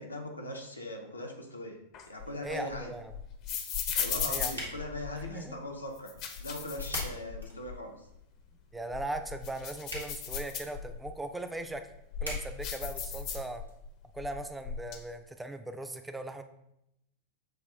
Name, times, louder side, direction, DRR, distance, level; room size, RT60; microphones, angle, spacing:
voice 1, 0.0-1.8 2.1-2.9 4.0-8.1, left 1 dB, 80° left, 2 dB, 0.7 m, -40 dB
sound 1, 1.9-5.4 6.0-7.8 8.1-8.2 8.7-11.1 11.7-13.9 14.1-14.9, left 7 dB, 40° left, 0.6 m, -37 dB
voice 2, 2.4-3.1 4.3-4.5 5.1-5.6 8.7-11.9 12.2-13.6 14.1-16.4, right 2 dB, 5° right, 7 dB, 0.4 m, -39 dB
sound 2, 3.8-13.7, right 1 dB, 85° right, 1.3 m, -47 dB
6.3 x 2.4 x 3.4 m, 0.81 s
figure-of-eight pair, 90°, 0 cm